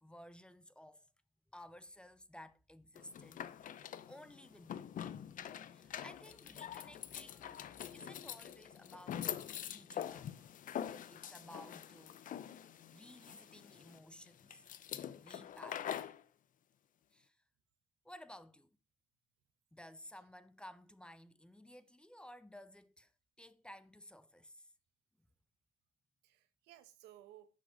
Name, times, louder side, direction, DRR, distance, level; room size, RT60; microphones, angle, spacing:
voice 1, 0.0-1.1 1.5-4.9 5.7-7.6 7.9-9.4 9.7-10.3 11.1-12.3 12.9-14.7 15.1-16.0 17.1-17.4 18.0-18.8 19.7-23.1 23.4-24.7 25.2-25.3, left 1 dB, 5° left, 0.8 m, -56 dB
sound 1, 3.0-16.2, left 9 dB, 50° left, 0.8 m, -45 dB
voice 2, 12.9-13.8 20.1-20.3 26.2-27.5, right 13 dB, 90° right, 1.2 m, -61 dB
10.5 x 6.3 x 5.2 m
cardioid pair, 110°, 17 cm